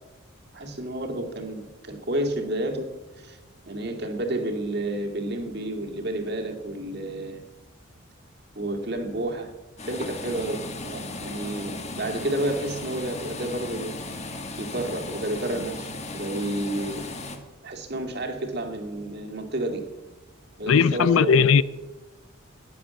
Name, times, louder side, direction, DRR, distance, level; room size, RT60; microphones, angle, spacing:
voice 1, 0.5-3.4 3.7-7.4 8.6-9.5 9.9-14.0 14.6-17.0 17.6-19.8 20.6-21.5, right 1 dB, 50° right, 2.2 m, -30 dB
sound 1, 9.8-17.4, left 2 dB, 30° left, 1.5 m, -36 dB
voice 2, 20.7-21.6, left 6 dB, 75° left, 0.4 m, -18 dB
15.0 x 10.0 x 7.1 m
head